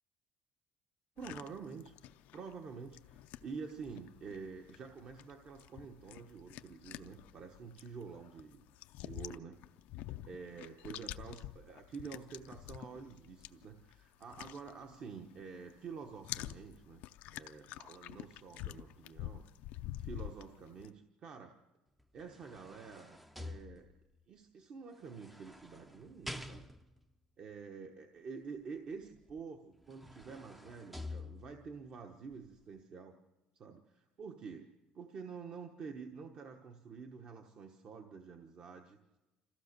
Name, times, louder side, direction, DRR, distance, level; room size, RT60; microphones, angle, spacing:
sound 1, 1.2-15.4 15.7-20.9, left 14 dB, 70° left, 0.6 m, -48 dB
voice 1, 1.2-2.0 2.3-8.6 9.0-9.6 10.2-17.0 17.3-19.4 20.0-21.5 22.1-23.9 24.3-26.7 27.4-33.1 33.5-39.0, right 5 dB, 40° right, 4 dB, 1.1 m, -48 dB
sound 2, 22.0-24.2 25.1-27.0 29.3-29.4 29.8-31.8 32.3-32.5, left 2 dB, 5° right, 0.6 m, -48 dB
26.0 x 15.0 x 6.7 m, 1.1 s
cardioid pair, 160°, 3 cm